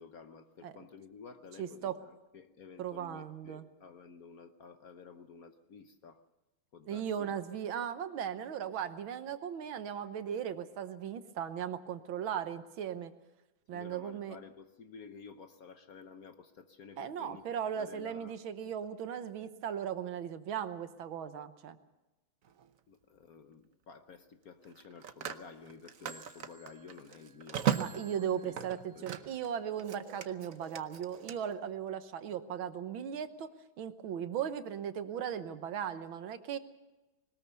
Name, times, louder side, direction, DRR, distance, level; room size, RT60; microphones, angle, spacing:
voice 1, 0.0-6.2 6.7-7.3 13.7-18.4 22.9-28.7 28.9-29.1, left 5 dB, 55° left, 8 dB, 1.1 m, -52 dB
voice 2, 1.6-2.0 2.8-3.7 6.9-13.1 13.7-14.4 17.0-21.8 27.8-33.5 33.8-36.6, right 8 dB, 75° right, 10 dB, 1.8 m, -37 dB
Telephone, 22.4-22.7 24.6-29.5 29.8-31.3, right 9 dB, 55° right, 1.0 m, -38 dB
21.0 x 19.0 x 6.8 m, 1.0 s
omnidirectional pair, 2.2 m